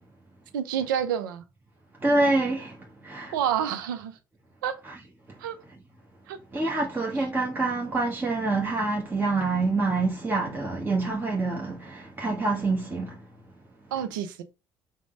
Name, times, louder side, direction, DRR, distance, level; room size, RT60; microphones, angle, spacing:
voice 1, 0.5-1.4 3.3-4.2 4.6-4.8 5.4-5.6 6.3-6.7 13.9-14.4, right 9 dB, 75° right, 0.6 m, -29 dB
voice 2, 2.0-2.8 3.0-3.3 4.8-5.0 6.5-13.2, right 3 dB, 20° right, 1.1 m, -26 dB
5.0 x 2.2 x 4.8 m
figure-of-eight pair, 55°, 11 cm